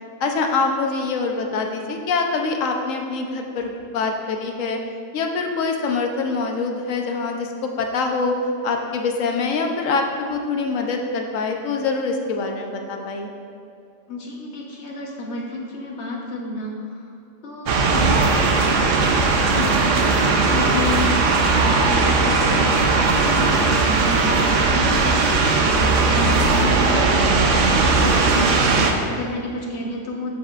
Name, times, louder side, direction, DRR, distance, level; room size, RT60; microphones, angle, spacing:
voice 1, 0.2-4.8 5.1-8.4 8.6-13.3, left 4 dB, 80° left, 3 dB, 1.1 m, -24 dB
voice 2, 14.1-17.1 17.4-21.1 21.6-30.3, left 2 dB, 60° left, -1 dB, 1.3 m, -31 dB
sound 1, 17.7-28.9, right 3 dB, 70° right, 1.0 m, -18 dB
8.7 x 7.4 x 2.4 m, 2.5 s
omnidirectional pair, 1.4 m